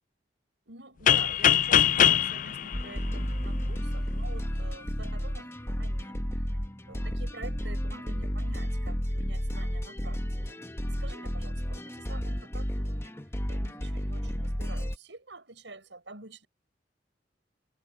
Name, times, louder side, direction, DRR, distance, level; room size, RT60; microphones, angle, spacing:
voice 1, 0.7-6.2 6.9-16.5, right 2 dB, 90° right, 7.4 m, -47 dB
sound 1, 1.1-3.8, left 10 dB, 45° left, 0.4 m, -23 dB
sound 2, 2.7-14.9, equal, 15° left, 1.2 m, -32 dB
head